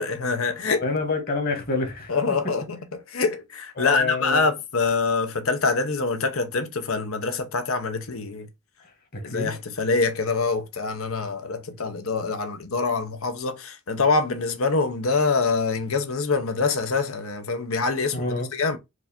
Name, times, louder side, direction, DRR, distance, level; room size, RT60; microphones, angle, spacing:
voice 1, 0.0-0.8 2.1-8.5 9.2-18.8, left 4 dB, 85° left, 0.9 m, -25 dB
voice 2, 0.6-2.1 3.8-4.4 9.1-9.5 18.1-18.5, left 3 dB, 45° left, 1.5 m, -27 dB
4.7 x 2.7 x 4.2 m
head